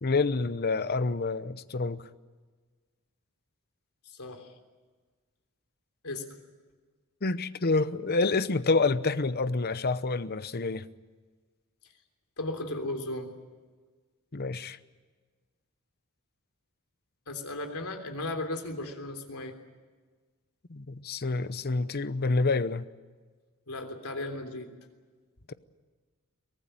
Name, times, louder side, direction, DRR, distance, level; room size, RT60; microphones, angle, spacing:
voice 1, 0.0-2.0 7.2-10.9 14.3-14.8 20.7-22.8 25.5-25.6, left 3 dB, 45° left, 0.8 m, -28 dB
voice 2, 12.4-13.3 17.3-19.5 23.7-24.7, left 2 dB, 90° left, 3.4 m, -35 dB
23.5 x 18.5 x 9.1 m
head